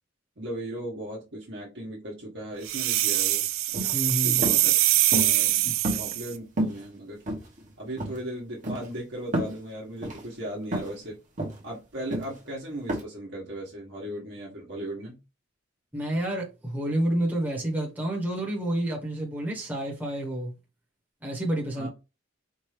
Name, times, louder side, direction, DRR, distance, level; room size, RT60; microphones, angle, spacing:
voice 1, 0.4-3.5 3.8-3.9 4.2-4.7 5.2-5.7 6.0-7.2 7.8-11.2 11.6-15.2 21.8-21.9, right 1 dB, 55° right, 1.3 m, -37 dB
sound 1, 2.7-6.3, right 15 dB, 80° right, 0.4 m, -23 dB
sound 2, 3.7-4.0 4.4-4.6 5.1-5.4 5.8-6.3 6.6-6.8 7.3-7.7 8.0-8.2 8.6-8.9 9.3-9.6 10.0-10.2 10.7-11.0 11.4-11.6 12.1-12.4 12.9-13.0, right 1 dB, 40° right, 1.1 m, -30 dB
voice 2, 3.9-4.5 5.6-5.8 15.9-20.5 21.2-21.9, right 1 dB, 10° right, 1.1 m, -29 dB
4.5 x 2.7 x 3.2 m
head